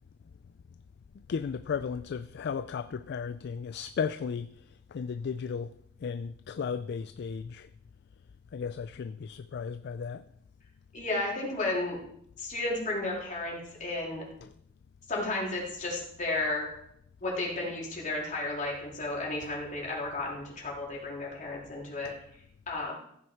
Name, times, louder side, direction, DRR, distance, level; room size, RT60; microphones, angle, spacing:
voice 1, 1.3-4.5 4.9-5.7 6.0-7.7 8.5-10.2 14.4-14.5 22.0-22.1, left 6 dB, 55° left, 0.3 m, -35 dB
voice 2, 10.9-12.0 12.4-14.2 15.1-16.7 17.2-22.1 22.7-22.9, left 2 dB, 40° left, 3.6 m, -33 dB
15.0 x 6.4 x 4.6 m
head